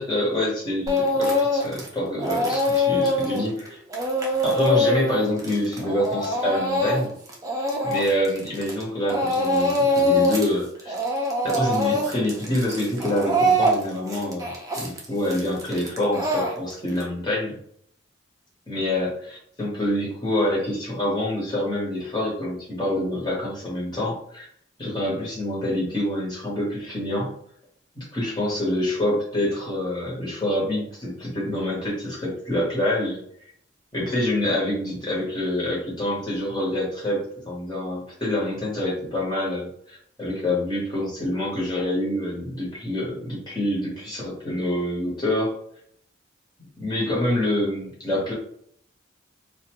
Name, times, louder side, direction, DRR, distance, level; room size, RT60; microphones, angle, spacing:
voice 1, 0.0-3.8 4.4-7.1 7.8-10.9 11.4-17.6 18.7-24.5 24.8-27.3 27.9-33.2 33.9-45.5 46.8-48.3, left 1 dB, 20° left, -5 dB, 1.0 m, -26 dB
Speech / Crying sobbing, 0.9-1.9 2.2-8.8 9.1-10.5 10.8-17.0, left 1 dB, 15° right, 0.4 m, -23 dB
2.5 x 2.2 x 2.9 m, 0.65 s
head